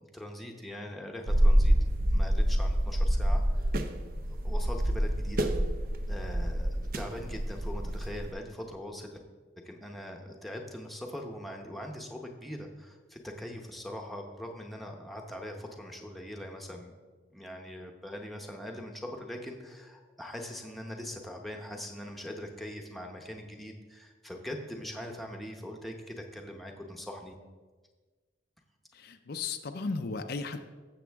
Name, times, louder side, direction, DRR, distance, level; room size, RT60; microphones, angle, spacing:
voice 1, 0.1-3.7 4.4-5.5 6.1-9.2 9.6-16.9 17.3-27.4, left 1 dB, ahead, 2 dB, 0.9 m, -42 dB
sound 1, 1.3-8.3, equal, 50° right, 0.6 m, -27 dB
voice 2, 28.9-30.6, left 4 dB, 55° left, 7 dB, 0.5 m, -35 dB
13.5 x 7.2 x 3.5 m, 1.4 s
head